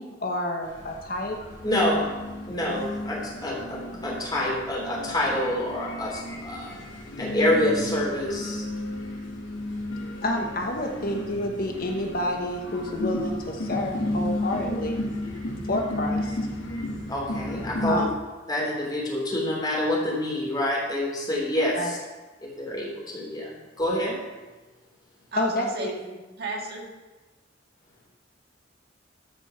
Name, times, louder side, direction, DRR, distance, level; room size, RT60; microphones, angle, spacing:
voice 1, 0.0-1.4 10.2-15.0 15.7-16.4 17.9-18.2 21.7-21.9 25.4-25.9, left 1 dB, 50° left, 2 dB, 1.1 m, -29 dB
sound 1, 0.6-18.0, left 1 dB, 80° left, 2.7 m, -33 dB
voice 2, 1.6-2.1 2.4-6.8 7.2-8.7 17.1-18.1 18.5-22.0 22.4-24.2, left 1 dB, 20° left, -3 dB, 3.0 m, -27 dB
voice 3, 25.3-26.8, right 2 dB, 55° right, -1 dB, 1.9 m, -34 dB
13.5 x 5.3 x 5.7 m, 1.2 s
head